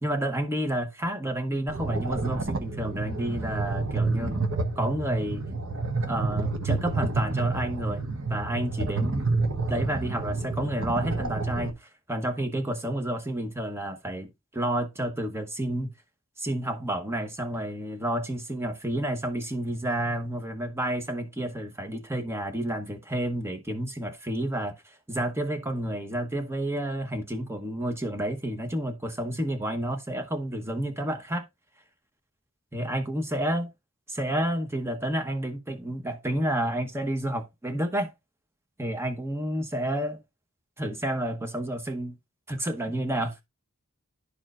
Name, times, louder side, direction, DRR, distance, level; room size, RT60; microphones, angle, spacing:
voice 1, 0.0-4.4 4.8-5.4 6.1-8.0 8.3-9.3 9.7-15.9 16.4-31.4 32.7-33.7 34.1-38.1 38.8-40.2 40.8-42.2 42.5-43.4, right 1 dB, 15° right, 1.0 m, -30 dB
sound 1, 1.7-11.7, right 3 dB, 75° right, 1.0 m, -29 dB
11.0 x 4.5 x 2.4 m
head